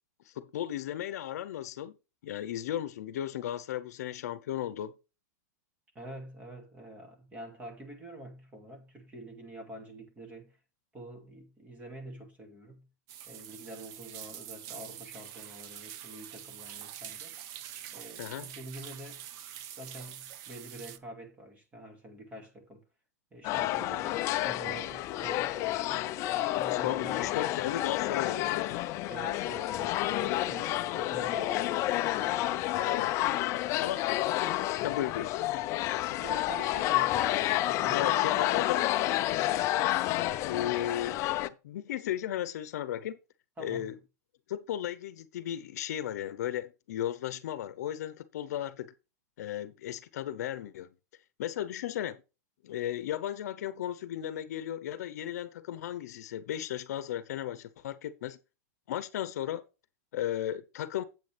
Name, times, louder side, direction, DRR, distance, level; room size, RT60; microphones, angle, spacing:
voice 1, 0.3-2.0 2.2-4.9 18.2-18.5 26.7-28.8 32.7-34.0 34.8-35.4 36.1-36.2 37.9-38.8 40.4-43.2 43.6-43.9 44.5-48.9 49.4-50.9 51.4-52.2 52.6-58.4 58.9-59.6 60.1-61.0, left 11 dB, 70° left, 0.8 m, -35 dB
voice 2, 5.9-10.6 10.9-12.9 13.3-17.3 17.9-19.2 19.8-22.8 23.3-26.1 26.5-27.3 29.1-32.5 33.2-33.8 36.2-38.7 43.6-43.9, right 1 dB, 15° right, 2.4 m, -46 dB
sound 1, 13.1-21.0, right 11 dB, 40° right, 0.8 m, -45 dB
sound 2, 23.4-41.5, left 15 dB, 35° left, 0.5 m, -30 dB
9.2 x 8.1 x 3.4 m
supercardioid pair, 150°, 9 cm